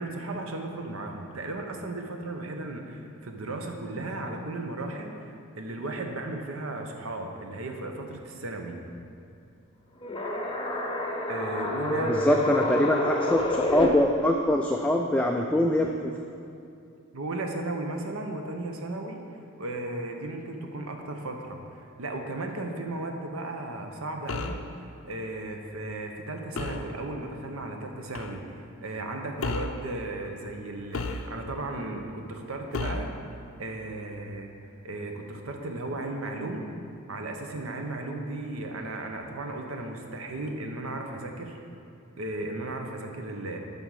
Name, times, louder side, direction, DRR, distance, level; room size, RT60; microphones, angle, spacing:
voice 1, 0.0-8.8 11.3-12.6 17.1-19.2 19.6-33.1 33.6-34.5 34.8-36.6 37.1-41.6 42.2-43.6, right 2 dB, 80° right, 4 dB, 0.8 m, -35 dB
sound 1, 10.0-13.9, left 1 dB, 25° left, 0.8 m, -28 dB
voice 2, 12.0-16.1, left 1 dB, 5° left, 1 dB, 0.3 m, -24 dB
sound 2, 24.3-24.7 26.6-26.9 28.1-28.4 29.4-29.8 30.9-31.6 32.7-33.2, left 3 dB, 70° left, 0.5 m, -32 dB
8.9 x 5.4 x 4.8 m, 2.5 s
head